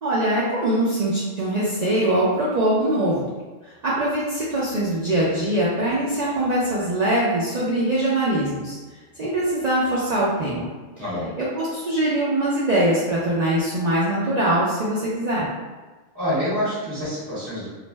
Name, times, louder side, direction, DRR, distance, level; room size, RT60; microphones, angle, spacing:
voice 1, 0.0-3.2 3.8-8.8 9.2-10.6 11.0-11.1 11.4-15.5, right 1 dB, 60° right, -8 dB, 0.4 m, -22 dB
voice 2, 11.0-11.3 16.1-17.7, equal, 20° right, -10 dB, 1.0 m, -26 dB
2.5 x 2.0 x 3.2 m, 1.3 s
omnidirectional pair, 1.3 m